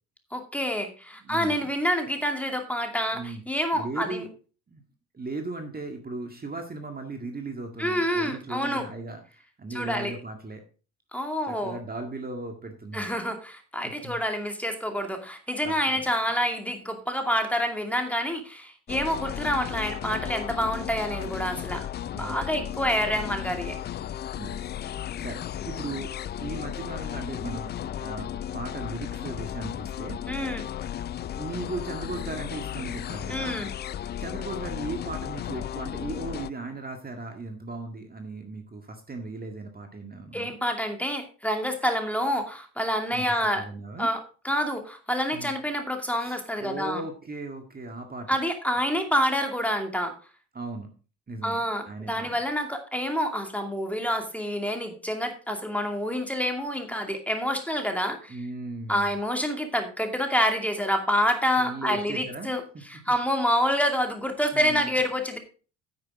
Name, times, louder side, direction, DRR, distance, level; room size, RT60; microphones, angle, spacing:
voice 1, 0.3-4.3 7.8-8.8 9.7-10.1 11.1-11.8 12.9-21.9 22.1-23.8 30.3-30.7 33.3-33.7 40.3-43.7 44.0-44.2 44.4-47.0 48.3-50.1 51.4-58.4 58.9-62.6 62.9-65.4, equal, 5° left, 4 dB, 2.4 m, -27 dB
voice 2, 1.2-1.7 3.1-3.4 3.7-4.3 4.7-4.8 5.1-10.6 11.5-13.2 13.8-14.2 15.6-16.1 21.1-21.2 22.1-22.8 24.3-30.2 31.3-33.6 34.2-40.6 43.1-43.2 43.6-44.1 45.3-45.6 46.2-48.4 50.5-50.9 51.3-52.4 58.3-59.2 61.6-62.5 64.5-65.0, right 3 dB, 20° right, 4 dB, 1.9 m, -37 dB
sound 1, 18.9-36.5, left 10 dB, 25° left, 0.4 m, -35 dB
9.7 x 8.9 x 3.7 m, 0.36 s
hypercardioid pair, 70°, 40 cm